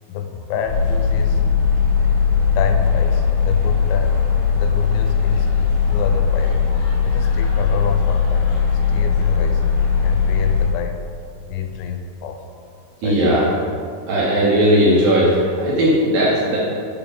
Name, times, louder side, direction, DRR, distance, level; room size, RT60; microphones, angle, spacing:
voice 1, 0.1-1.4 2.5-5.6 5.9-6.7 7.0-8.5 8.9-11.0 11.5-12.4 13.0-13.3, left 7 dB, 85° left, 5 dB, 2.9 m, -28 dB
sound 1, 0.7-10.7, left 6 dB, 65° left, 3.8 m, -18 dB
voice 2, 13.0-13.4 14.1-16.6, equal, 70° right, -6 dB, 2.2 m, -17 dB
8.8 x 5.1 x 4.9 m, 2.3 s
omnidirectional pair, 5.4 m